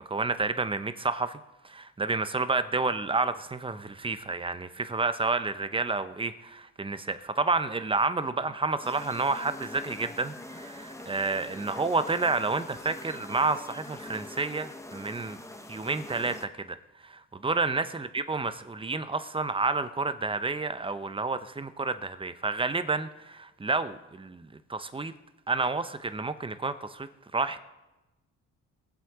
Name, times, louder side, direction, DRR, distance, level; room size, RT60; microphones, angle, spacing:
voice 1, 0.1-1.4 1.6-15.4 15.7-16.8 17.0-25.1 25.5-27.1 27.3-27.6, right 3 dB, 15° right, 11 dB, 0.8 m, -30 dB
sound 1, 8.8-16.5, left 1 dB, 10° left, 1.0 m, -44 dB
21.0 x 7.8 x 4.9 m, 1.0 s
cardioid pair, 90°, 30 cm